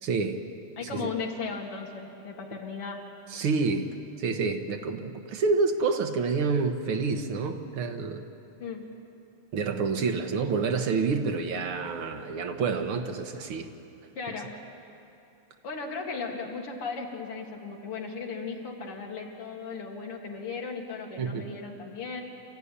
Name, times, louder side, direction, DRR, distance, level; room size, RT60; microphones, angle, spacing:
voice 1, 0.0-0.4 0.8-1.1 3.3-3.9 4.2-8.3 9.5-13.7 21.2-21.4, right 4 dB, 75° right, 5 dB, 2.1 m, -28 dB
voice 2, 0.8-3.1 8.6-8.9 14.1-14.6 15.6-22.2, left 4 dB, 85° left, 1 dB, 3.3 m, -36 dB
26.5 x 15.0 x 10.0 m, 2.8 s
omnidirectional pair, 2.4 m